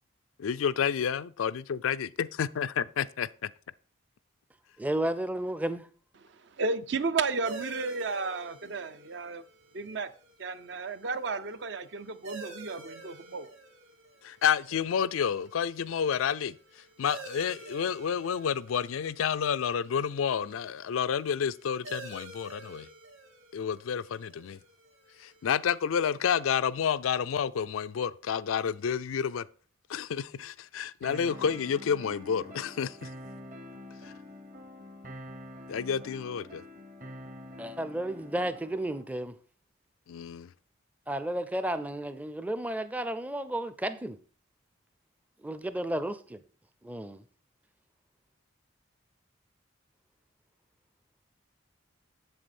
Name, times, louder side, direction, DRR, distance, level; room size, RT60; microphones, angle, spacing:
voice 1, 0.4-3.5 14.2-16.6 17.0-22.9 23.5-24.6 25.2-29.4 29.9-33.1 34.0-34.1 35.7-36.6 40.1-40.5, left 7 dB, 90° left, 0.4 m, -30 dB
voice 2, 4.8-5.9 37.6-39.3 41.1-44.2 45.4-46.4 46.8-47.2, right 1 dB, 5° right, 0.4 m, -32 dB
voice 3, 6.6-9.4 9.7-10.1 10.4-13.5, right 4 dB, 60° right, 0.6 m, -33 dB
sound 1, 7.4-26.6, right 2 dB, 90° right, 2.6 m, -49 dB
sound 2, 31.0-39.0, left 1 dB, 40° right, 1.1 m, -46 dB
7.8 x 7.4 x 4.3 m
head